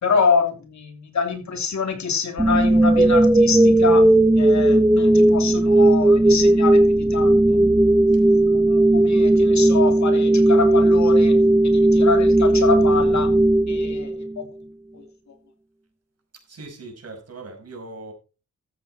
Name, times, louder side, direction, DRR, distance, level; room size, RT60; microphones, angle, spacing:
voice 1, 0.0-4.1 4.4-7.6 8.7-11.4 11.6-13.3 13.7-14.5 14.9-15.0, left 5 dB, 70° left, 3.0 m, -26 dB
sound 1, 2.4-14.4, right 1 dB, 10° right, 0.5 m, -16 dB
voice 2, 16.5-18.1, right 3 dB, 55° right, 5.5 m, -40 dB
14.0 x 8.0 x 4.4 m
wide cardioid pair, 105°, 29 cm